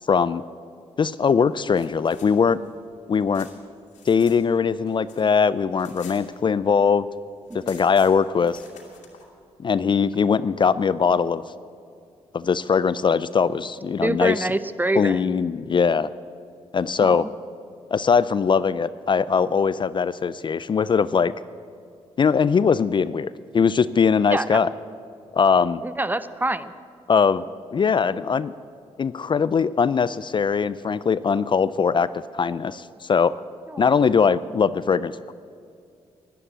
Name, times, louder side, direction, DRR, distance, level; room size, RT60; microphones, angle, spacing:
voice 1, 0.1-0.4 1.0-2.6 3.1-3.5 4.1-7.1 7.7-8.6 9.6-11.4 12.3-14.5 15.0-16.1 16.7-17.3 17.9-21.3 22.2-24.7 25.3-25.8 27.1-27.4 27.7-28.5 29.0-32.1 32.3-33.3 33.8-35.3, left 6 dB, 40° left, 16 dB, 0.4 m, -21 dB
sound 1, 1.7-4.4 4.7-6.8 7.1-7.2 7.4-9.3, left 6 dB, 85° left, 2.3 m, -49 dB
voice 2, 14.0-15.2 17.0-17.3 24.3-24.6 25.8-26.7 33.7-34.0, right 1 dB, 15° right, 13 dB, 0.7 m, -26 dB
11.5 x 11.0 x 8.7 m, 2.4 s
cardioid pair, 60°, 12 cm